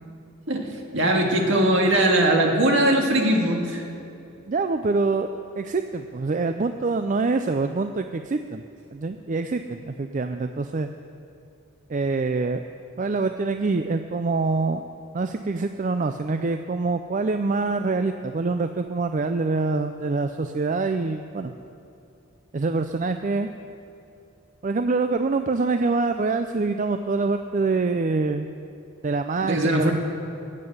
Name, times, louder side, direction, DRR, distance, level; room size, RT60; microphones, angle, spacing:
voice 1, 0.9-3.8 29.4-29.9, right 1 dB, 60° right, 1 dB, 2.1 m, -20 dB
voice 2, 4.5-5.3 5.6-8.6 8.9-10.9 11.9-12.6 13.0-14.8 15.1-21.5 22.5-23.5 24.6-28.5 29.0-29.9, right 3 dB, 35° right, 8 dB, 0.4 m, -25 dB
19.0 x 7.7 x 7.9 m, 2.7 s
head